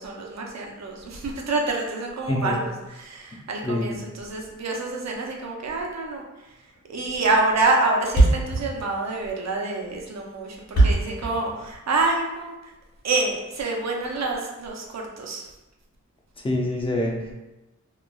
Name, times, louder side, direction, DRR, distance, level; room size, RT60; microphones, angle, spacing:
voice 1, 0.0-6.6 6.9-12.7 13.0-15.5, right 3 dB, 60° right, 0 dB, 0.5 m, -27 dB
voice 2, 2.3-2.6 3.6-4.0 16.4-17.3, left 1 dB, 20° left, -1 dB, 0.4 m, -26 dB
Thump thud, 6.7-6.9 7.2-7.3 7.5-7.6 7.8-7.9 8.1-12.1, right 2 dB, 55° left, 1.3 m, -21 dB
3.0 x 2.3 x 2.2 m, 1.0 s
wide cardioid pair, 130°, 31 cm